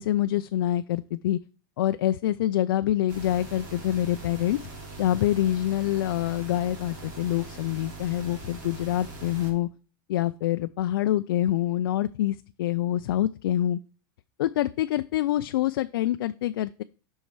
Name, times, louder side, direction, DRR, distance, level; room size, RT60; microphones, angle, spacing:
voice 1, 0.0-1.4 1.8-4.6 5.0-9.7 10.1-13.8 14.4-16.8, left 13 dB, 80° left, 10 dB, 0.4 m, -26 dB
sound 1, 3.1-9.5, right 3 dB, 65° right, 3.6 m, -42 dB
7.2 x 5.5 x 4.6 m, 0.37 s
supercardioid pair, 175°, 12 cm